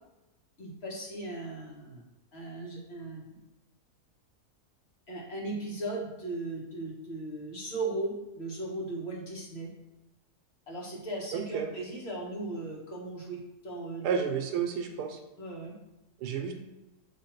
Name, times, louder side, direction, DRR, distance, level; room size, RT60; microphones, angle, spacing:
voice 1, 0.6-2.0 2.3-3.4 5.1-9.7 10.7-14.2 15.4-15.7, right 2 dB, 40° left, -3 dB, 1.5 m, -37 dB
voice 2, 11.3-11.7 14.0-15.2 16.2-16.5, right 7 dB, 90° right, 4 dB, 1.2 m, -31 dB
7.4 x 2.8 x 4.5 m, 0.99 s
omnidirectional pair, 1.7 m